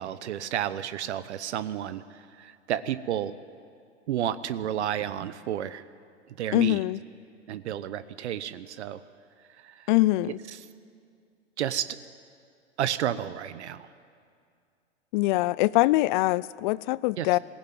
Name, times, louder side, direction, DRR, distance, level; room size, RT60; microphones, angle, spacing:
voice 1, 0.0-3.3 4.1-5.9 6.4-6.8 7.5-9.0 9.5-9.9 10.5-10.7 11.6-12.0 12.8-13.9 17.2-17.4, right 10 dB, 65° right, 14 dB, 0.9 m, -31 dB
voice 2, 6.5-7.0 9.9-10.4 15.1-17.4, left 19 dB, 40° left, 21 dB, 0.5 m, -23 dB
21.0 x 16.5 x 9.3 m, 2.3 s
hypercardioid pair, 110°, 36 cm